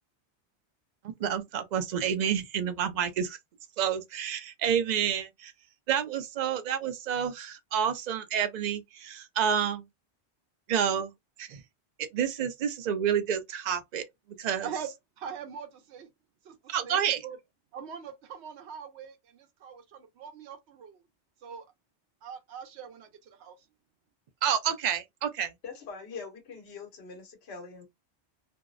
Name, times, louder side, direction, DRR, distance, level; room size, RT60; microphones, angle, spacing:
voice 1, 1.0-3.4 3.8-5.5 5.9-9.8 10.7-11.1 11.4-11.6 12.1-14.0 14.4-14.7 16.7-17.2 24.4-25.5, right 8 dB, 55° right, 0.5 m, -29 dB
voice 2, 14.6-16.1 16.4-17.4 17.7-21.0 21.4-21.6 22.2-23.7, right 7 dB, 80° right, 0.9 m, -42 dB
voice 3, 25.6-27.9, left 5 dB, 65° left, 1.1 m, -43 dB
2.6 x 2.0 x 2.3 m
omnidirectional pair, 1.1 m